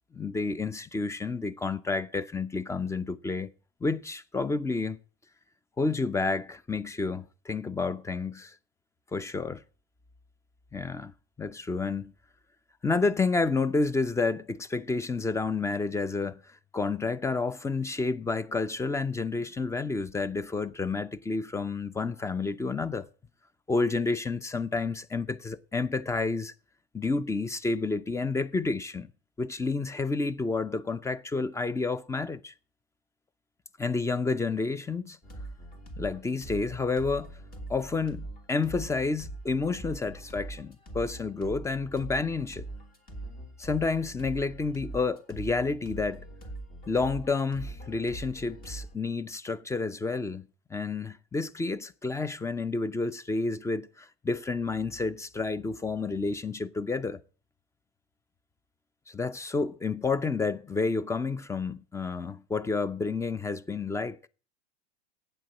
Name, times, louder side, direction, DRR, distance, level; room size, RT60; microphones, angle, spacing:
voice 1, 0.1-3.5 3.8-5.0 5.8-8.5 9.1-9.6 10.7-11.1 11.4-12.1 12.8-23.1 23.7-26.5 26.9-29.1 29.4-32.5 33.8-35.2 36.0-37.3 37.7-42.7 43.6-46.2 46.9-50.4 50.7-57.2 59.1-64.2, left 3 dB, 10° left, 0.6 m, -30 dB
sound 1, 35.2-49.0, right 2 dB, 25° left, 3.0 m, -42 dB
8.9 x 7.6 x 8.8 m
hypercardioid pair, 95°, 32 cm